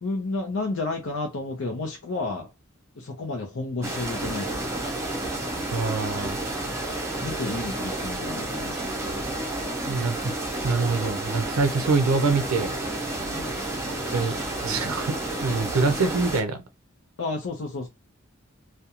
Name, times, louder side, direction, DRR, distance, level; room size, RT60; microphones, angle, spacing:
voice 1, 0.0-2.5 3.0-4.8 7.2-9.3 13.2-13.6 17.2-17.9, left 3 dB, 70° left, 0.6 m, -32 dB
sound 1, 3.8-16.4, right 2 dB, 15° right, 0.6 m, -31 dB
voice 2, 5.7-6.4 9.8-10.3 10.6-12.7 13.9-14.4 14.6-15.2 15.4-16.6, right 4 dB, 80° right, 0.4 m, -25 dB
2.4 x 2.1 x 2.8 m
head